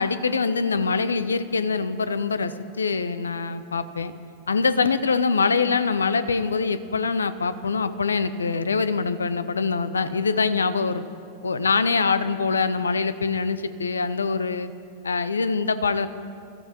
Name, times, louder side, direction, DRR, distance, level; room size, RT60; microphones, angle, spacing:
voice 1, 0.0-4.1 4.5-11.0 11.4-14.7 15.0-16.1, left 4 dB, 75° left, 14 dB, 0.6 m, -24 dB
23.0 x 14.0 x 3.0 m, 2.5 s
figure-of-eight pair, 90°, 0 cm